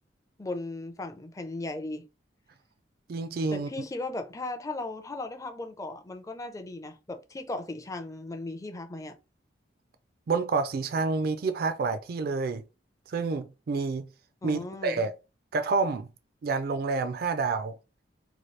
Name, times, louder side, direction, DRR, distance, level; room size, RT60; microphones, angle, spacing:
voice 1, 0.4-2.0 3.5-9.2 14.4-15.0, left 2 dB, 20° left, 0.4 m, -37 dB
voice 2, 3.1-3.7 10.3-12.6 13.1-14.1 14.4-15.1 15.5-16.1 16.4-17.7, right 4 dB, 55° right, 0.3 m, -28 dB
2.9 x 2.3 x 3.1 m
head